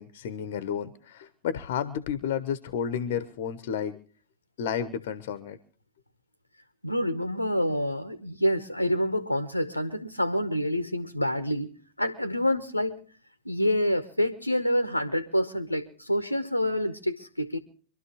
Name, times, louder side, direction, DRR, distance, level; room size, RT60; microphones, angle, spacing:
voice 1, 0.0-4.0 4.6-5.6, left 8 dB, 55° left, 1.0 m, -31 dB
voice 2, 6.8-13.0 13.4-17.6, equal, 90° left, 0.9 m, -27 dB
25.5 x 12.5 x 3.0 m
figure-of-eight pair, 90°, 0 cm